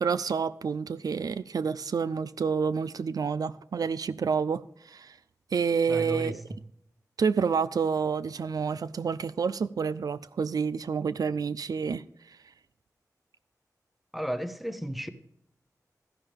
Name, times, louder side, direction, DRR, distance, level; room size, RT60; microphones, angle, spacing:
voice 1, 0.0-5.2 5.5-6.4 7.2-12.4, right 6 dB, 75° right, 0.4 m, -29 dB
voice 2, 5.9-6.4 14.1-15.1, equal, ahead, 0.9 m, -33 dB
13.0 x 11.0 x 3.5 m
wide cardioid pair, 90°, 7 cm